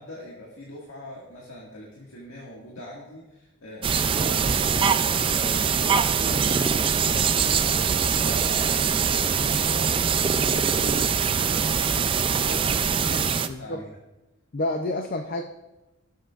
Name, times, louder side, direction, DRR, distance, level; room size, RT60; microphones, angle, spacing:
voice 1, 0.0-5.0 5.3-13.9, equal, 70° left, -4 dB, 1.8 m, -41 dB
sound 1, 3.8-13.5, right 6 dB, 25° right, 0.3 m, -23 dB
voice 2, 13.5-13.8 14.5-15.4, left 2 dB, 40° left, 5 dB, 0.5 m, -29 dB
18.0 x 7.7 x 2.4 m, 1.0 s
head